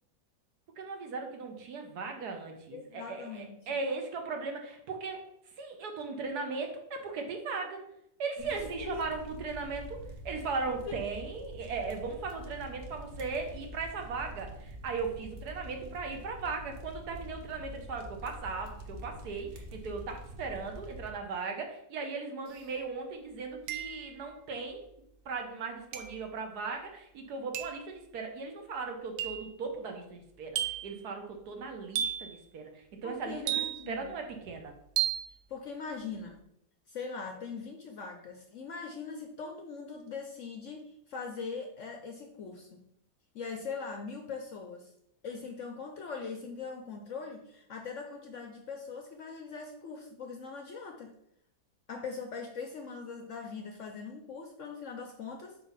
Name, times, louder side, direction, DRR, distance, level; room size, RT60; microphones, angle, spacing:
voice 1, 0.8-5.2 5.6-7.8 8.2-24.8 25.2-33.6 33.9-34.7, right 4 dB, 70° right, 3 dB, 1.4 m, -38 dB
voice 2, 2.7-3.8 8.4-9.0 33.0-34.2 35.5-36.4 36.9-42.9 43.3-44.9 45.2-51.2 51.9-55.6, left 5 dB, 60° left, 3 dB, 0.8 m, -41 dB
sound 1, 8.4-21.1, equal, 45° right, 0.8 m, -46 dB
sound 2, 22.5-22.6 23.7-24.2 25.9-26.3 27.5-27.9 29.2-29.5 30.6-31.0 32.0-32.4 33.5-34.0 35.0-35.3, right 10 dB, 90° right, 1.3 m, -33 dB
4.6 x 4.1 x 5.5 m, 0.75 s
omnidirectional pair, 1.8 m